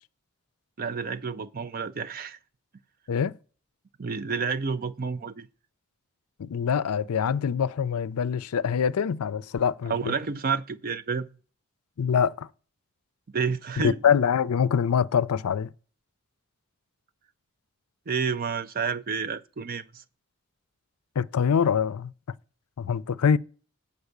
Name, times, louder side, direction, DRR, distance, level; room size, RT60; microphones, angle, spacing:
voice 1, 0.8-2.4 4.0-5.5 9.9-11.3 13.3-14.0 18.1-19.8, right 5 dB, 40° right, 0.5 m, -29 dB
voice 2, 6.4-10.1 12.0-12.5 13.8-15.7 21.2-22.1 22.8-23.4, left 7 dB, 85° left, 0.4 m, -24 dB
8.1 x 5.3 x 6.6 m
head